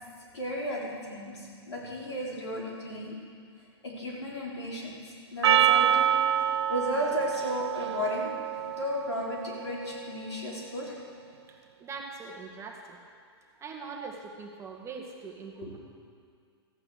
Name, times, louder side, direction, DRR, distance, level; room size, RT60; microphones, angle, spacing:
voice 1, 0.2-3.2 3.8-5.0 5.3-6.1 6.7-8.3 8.8-10.9 15.6-15.7, left 1 dB, 85° left, -5 dB, 4.2 m, -34 dB
Percussion, 5.4-10.0, right 10 dB, 80° right, 0.4 m, -27 dB
voice 2, 11.5-13.0 13.6-15.8, right 4 dB, 20° right, 1 dB, 1.6 m, -42 dB
14.0 x 8.7 x 6.5 m, 2.2 s
hypercardioid pair, 120°, 14 cm